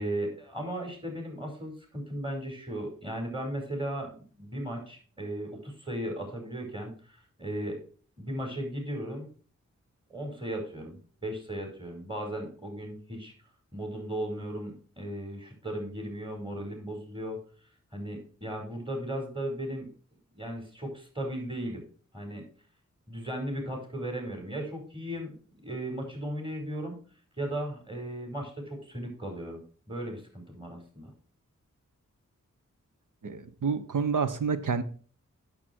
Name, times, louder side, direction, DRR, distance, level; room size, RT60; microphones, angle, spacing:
voice 1, 0.0-7.8 8.2-9.3 10.1-13.3 13.7-17.4 17.9-19.9 20.3-21.8 22.1-22.4 23.1-25.3 25.6-27.0 27.4-31.1, right 1 dB, 15° right, 2 dB, 5.1 m, -36 dB
voice 2, 33.2-34.8, right 5 dB, 80° right, 11 dB, 1.1 m, -28 dB
8.7 x 7.7 x 4.5 m, 0.42 s
cardioid pair, 60°, 31 cm